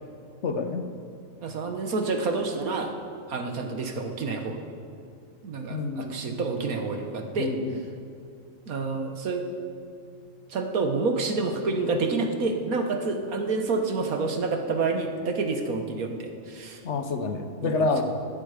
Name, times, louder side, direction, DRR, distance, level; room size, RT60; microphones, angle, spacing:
voice 1, 0.4-0.9 5.7-6.1 7.4-7.7 16.8-18.0, left 3 dB, 55° left, 7 dB, 1.3 m, -28 dB
voice 2, 1.4-2.9 3.3-4.6 5.4-7.5 8.7-9.5 10.5-16.8 17.6-18.0, right 3 dB, 90° right, 4 dB, 1.8 m, -28 dB
17.0 x 12.0 x 5.1 m, 2.4 s
omnidirectional pair, 1.5 m